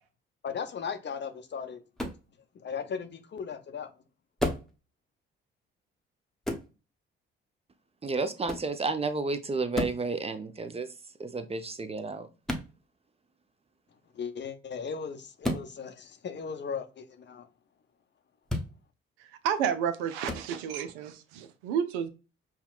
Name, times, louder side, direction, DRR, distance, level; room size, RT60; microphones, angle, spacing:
voice 1, 0.4-1.8 2.5-3.9 14.1-17.5, left 6 dB, 40° left, 0.7 m, -37 dB
sound 1, 2.0-2.2 4.4-4.7 6.4-6.7 8.4-8.7 9.7-10.0 12.4-12.7 15.4-15.7 18.4-18.7 20.2-20.4, left 1 dB, ahead, 0.9 m, -31 dB
voice 2, 8.0-10.9 11.2-12.3, right 3 dB, 20° right, 0.6 m, -31 dB
voice 3, 19.2-22.1, right 8 dB, 75° right, 0.5 m, -31 dB
5.6 x 2.2 x 2.3 m
hypercardioid pair, 45°, 29 cm